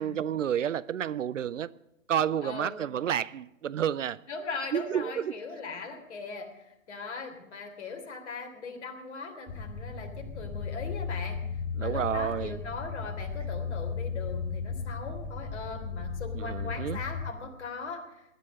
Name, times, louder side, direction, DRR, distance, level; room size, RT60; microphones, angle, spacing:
voice 1, 0.0-1.7 2.1-4.2 4.7-5.3 11.8-12.6 16.3-17.0, right 9 dB, 65° right, 0.6 m, -30 dB
voice 2, 2.4-2.8 4.3-6.5 6.9-11.4 11.8-18.0, left 4 dB, 55° left, 3.4 m, -39 dB
sound 1, 9.5-17.3, left 5 dB, 20° left, 1.9 m, -35 dB
19.0 x 11.0 x 6.4 m
figure-of-eight pair, 125°, 41 cm